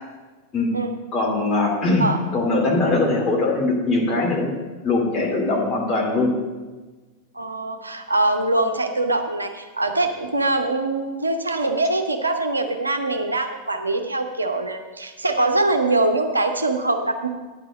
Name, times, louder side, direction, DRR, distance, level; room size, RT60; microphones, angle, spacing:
voice 1, 1.1-2.1 2.3-4.5 4.8-6.3, left 2 dB, 30° left, -2 dB, 2.7 m, -21 dB
voice 2, 7.3-17.3, right 2 dB, 80° right, 5 dB, 0.7 m, -23 dB
9.8 x 4.9 x 7.7 m, 1.3 s
figure-of-eight pair, 90°, 0 cm